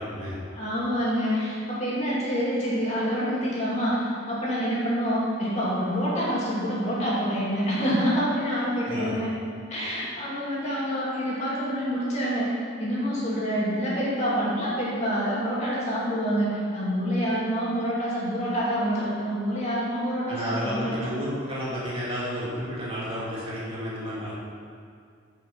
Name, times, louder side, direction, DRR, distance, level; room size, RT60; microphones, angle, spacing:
voice 1, 0.0-0.4 8.8-9.2 20.3-24.3, equal, 30° right, -8 dB, 2.3 m, -31 dB
voice 2, 0.5-9.3 9.7-21.0, equal, 40° left, -7 dB, 2.4 m, -27 dB
8.7 x 5.4 x 5.5 m, 2.2 s
head